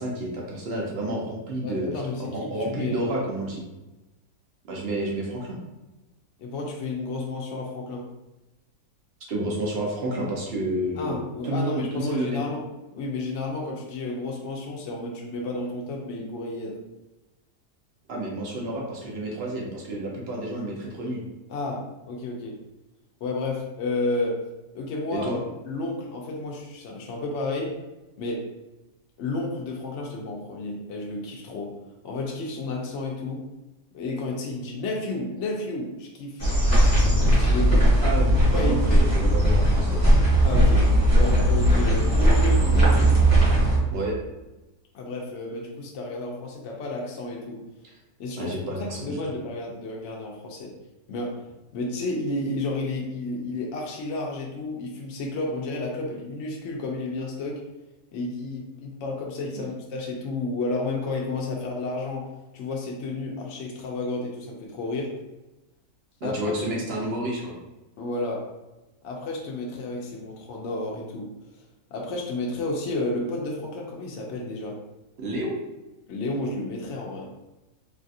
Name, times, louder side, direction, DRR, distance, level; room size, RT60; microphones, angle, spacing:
voice 1, 0.0-1.9 2.2-3.6 4.6-5.6 9.3-11.2 11.4-12.4 18.1-21.2 25.1-25.4 38.0-40.0 43.9-44.1 48.4-49.2 66.2-67.5 75.2-75.6, right 1 dB, 60° right, -2 dB, 0.7 m, -30 dB
voice 2, 1.6-3.3 6.4-8.0 11.0-12.6 12.9-16.8 21.5-22.6 23.2-24.4 24.7-25.3 25.7-27.7 28.2-28.4 29.2-31.7 32.0-33.4 33.9-38.0 38.5-39.1 40.4-40.9 41.1-43.1 44.9-47.6 48.2-48.5 49.0-50.7 51.1-51.3 51.7-57.6 58.1-62.2 62.5-65.1 66.2-66.4 68.0-68.4 69.0-71.3 71.9-74.8 76.1-77.3, left 2 dB, 65° left, -1 dB, 0.7 m, -31 dB
sound 1, 36.4-43.8, right 1 dB, 15° left, 0.8 m, -18 dB
3.3 x 2.4 x 2.6 m, 1.0 s
omnidirectional pair, 1.6 m